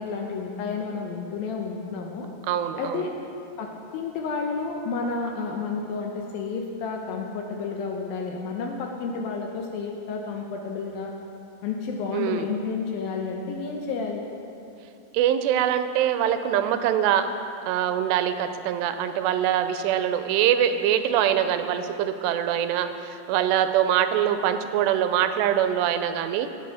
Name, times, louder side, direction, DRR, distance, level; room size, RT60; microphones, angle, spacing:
voice 1, 0.0-2.3 2.8-3.1 3.6-11.1 11.6-14.3, left 4 dB, 80° left, 2 dB, 2.3 m, -31 dB
voice 2, 2.5-3.1 12.1-12.5 15.1-17.3 17.7-26.5, right 10 dB, 85° right, 9 dB, 2.8 m, -23 dB
18.0 x 7.0 x 4.8 m, 2.7 s
omnidirectional pair, 4.8 m